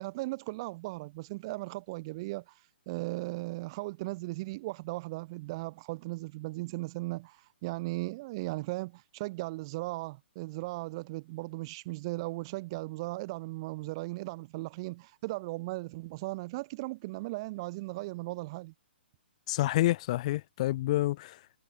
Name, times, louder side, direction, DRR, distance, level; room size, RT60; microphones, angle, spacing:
voice 1, 0.0-18.7, right 22 dB, 25° right, 0.4 m, -37 dB
voice 2, 19.5-21.6, left 16 dB, 35° left, 1.5 m, -28 dB
hypercardioid pair, 160°, 6 cm